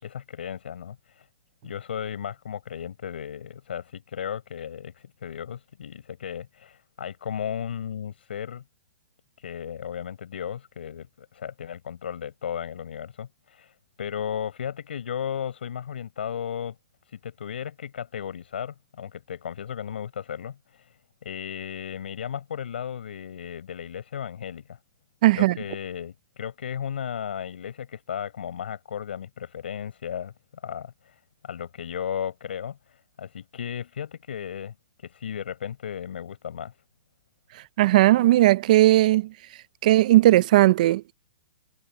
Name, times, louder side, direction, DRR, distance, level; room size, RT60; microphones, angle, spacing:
voice 1, 0.0-1.3 1.6-8.6 9.4-16.8 17.1-21.0 21.2-24.8 25.3-30.3 30.6-36.7, left 8 dB, 85° left, 6.0 m, -35 dB
voice 2, 25.2-25.6 37.8-39.3 39.8-41.1, right 16 dB, 45° right, 0.5 m, -17 dB
hypercardioid pair, 160°, 6 cm